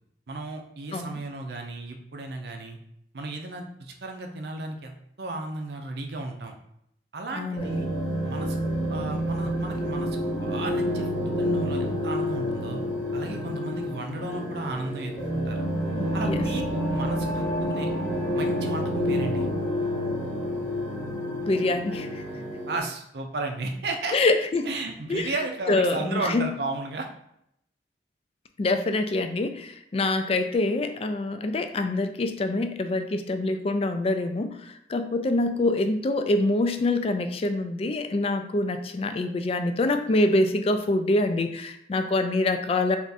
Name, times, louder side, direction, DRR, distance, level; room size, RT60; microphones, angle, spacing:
voice 1, 0.3-2.8 3.1-6.6 7.1-7.9 8.2-12.8 13.1-15.7 16.1-17.9 18.3-19.5 22.7-24.2 24.6-27.1, right 2 dB, 65° right, 3 dB, 0.5 m, -34 dB
voice 2, 7.4-7.9 16.2-16.4 21.4-22.2 24.1-24.7 25.1-25.3 25.7-26.5 28.6-43.0, left 2 dB, 35° left, 8 dB, 0.3 m, -25 dB
sound 1, 7.6-22.8, equal, 5° left, 1.0 m, -28 dB
3.5 x 2.5 x 4.0 m, 0.74 s
head